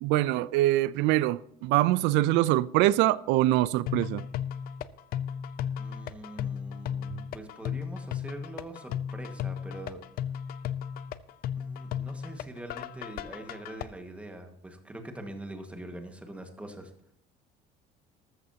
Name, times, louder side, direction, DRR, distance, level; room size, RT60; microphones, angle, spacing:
voice 1, 0.0-4.2, right 16 dB, 85° right, 0.5 m, -24 dB
sound 1, 3.9-13.9, left 9 dB, 55° left, 0.7 m, -35 dB
voice 2, 5.8-10.0 11.5-16.9, right 1 dB, 5° right, 1.7 m, -43 dB
14.0 x 13.5 x 2.8 m
cardioid pair, 160°, 18 cm